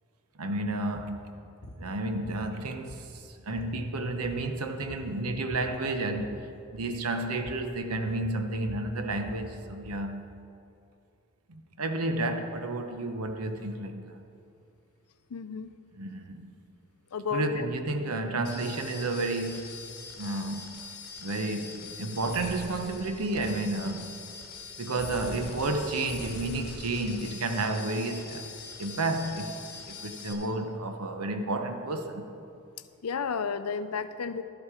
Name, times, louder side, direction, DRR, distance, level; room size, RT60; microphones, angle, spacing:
voice 1, 0.4-1.3 1.8-10.3 11.5-14.2 15.9-16.5 17.3-19.8 20.2-20.7 21.2-24.1 24.8-28.5 28.8-32.3, right 2 dB, 80° right, 0.8 m, -31 dB
sound 1, 0.9-1.2 1.6-1.8 2.2-3.2 3.5-3.8 4.1-4.5 4.8-5.7 6.1-6.4 6.7-7.0 7.4-7.7 8.1-10.1, left 1 dB, 65° left, 1.0 m, -46 dB
voice 2, 15.3-15.7 17.1-17.7 33.0-34.4, left 5 dB, 80° left, 0.5 m, -32 dB
sound 2, 18.4-30.3, left 4 dB, 45° left, 2.0 m, -43 dB
12.5 x 7.4 x 4.9 m
head